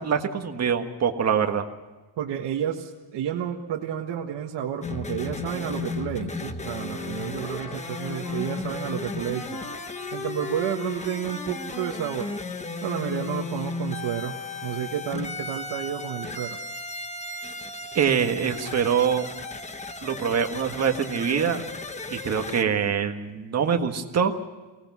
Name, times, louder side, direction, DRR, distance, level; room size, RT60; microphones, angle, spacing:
voice 1, 0.0-1.7 17.9-19.3 20.0-21.6 22.1-24.3, right 7 dB, 35° right, 5 dB, 1.7 m, -24 dB
voice 2, 2.2-9.6 10.1-12.3 12.8-16.6, right 10 dB, 60° right, 0 dB, 1.6 m, -31 dB
sound 1, 4.8-22.6, left 3 dB, 15° left, 1.0 m, -35 dB
Trumpet, 6.9-12.4 12.9-14.9, left 3 dB, 50° left, 4.1 m, -44 dB
23.5 x 18.0 x 6.2 m, 1.2 s
cardioid pair, 165°, 47 cm